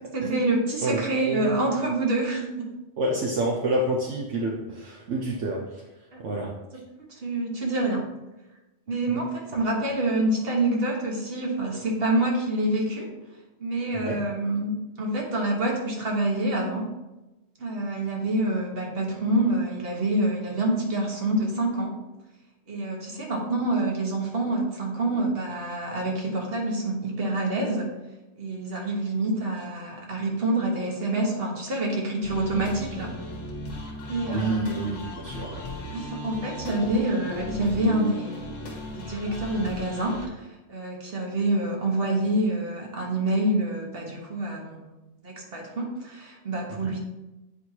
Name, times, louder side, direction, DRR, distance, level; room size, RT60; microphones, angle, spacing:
voice 1, 0.1-2.7 6.1-6.2 7.1-8.1 8.9-13.1 13.6-16.9 17.6-22.0 22.7-27.9 28.4-33.1 34.1-34.7 35.9-38.6 39.0-45.0 45.2-47.0, right 2 dB, 50° right, -1 dB, 1.4 m, -27 dB
voice 2, 0.8-1.5 3.0-5.8 6.2-6.5 13.9-14.2 34.3-35.6 46.8-46.9, right 1 dB, 75° right, -1 dB, 1.1 m, -28 dB
sound 1, 32.2-40.3, left 1 dB, 70° left, 1.4 m, -37 dB
8.7 x 4.6 x 2.8 m, 1.0 s
omnidirectional pair, 1.3 m